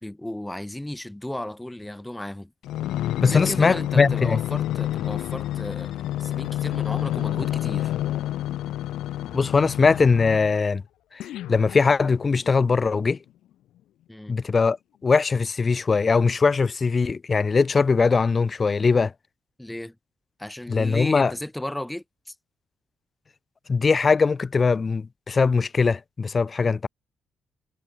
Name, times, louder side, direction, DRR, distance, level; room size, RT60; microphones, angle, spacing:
voice 1, 0.0-2.5 3.2-7.9 14.1-14.4 19.6-20.0 20.4-22.3, left 1 dB, 5° left, 2.7 m, -34 dB
sound 1, 2.6-10.6 11.2-12.5 13.1-13.2, left 13 dB, 80° left, 2.1 m, -29 dB
voice 2, 3.2-4.4 9.3-10.8 11.2-13.2 14.3-14.8 15.0-19.1 20.7-21.3 23.7-26.9, left 4 dB, 35° left, 1.3 m, -21 dB
cardioid pair, 90°, 0 cm